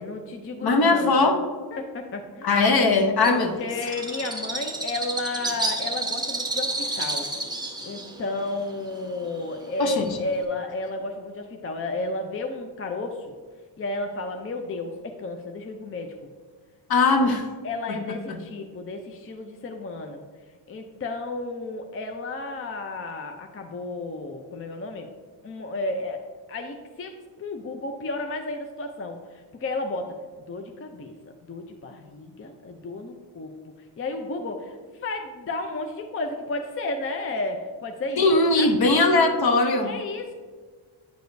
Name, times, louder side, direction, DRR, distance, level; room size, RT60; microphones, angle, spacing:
voice 1, 0.0-1.4 1.7-2.6 3.3-7.3 7.8-13.3 13.8-16.1 17.6-20.2 20.7-25.1 25.4-26.2 26.5-29.2 29.6-30.2 30.5-33.5 34.0-39.4 39.8-40.3, left 2 dB, 30° left, 4 dB, 0.5 m, -32 dB
voice 2, 0.6-1.4 2.4-3.5 9.8-10.1 16.9-17.4 17.9-18.2 38.2-39.9, left 3 dB, 50° left, 5 dB, 0.9 m, -20 dB
Bird, 3.2-10.4, right 2 dB, 10° right, 0.7 m, -31 dB
9.2 x 4.8 x 2.6 m, 1.5 s
cardioid pair, 95°, 47 cm